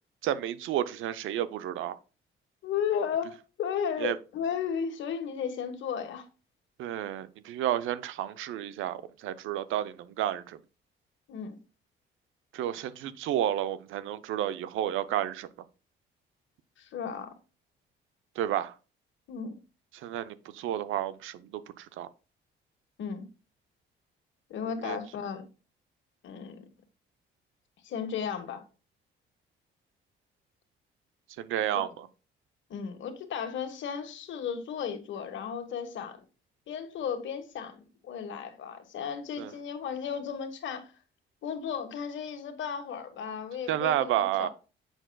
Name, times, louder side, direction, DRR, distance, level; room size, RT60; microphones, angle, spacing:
voice 1, 0.2-2.0 4.0-4.2 6.8-10.6 12.5-15.5 18.4-18.7 20.0-22.1 24.8-25.0 31.4-32.1 39.4-39.5 43.7-44.5, right 11 dB, 85° right, 0.6 m, -31 dB
voice 2, 2.6-6.2 11.3-11.6 16.8-17.3 19.3-19.6 23.0-23.3 24.5-25.4 26.2-26.7 27.8-28.6 32.7-36.2 36.7-40.9 41.4-44.5, left 7 dB, 70° left, 1.3 m, -34 dB
7.9 x 6.0 x 2.2 m
cardioid pair, 90°, 20 cm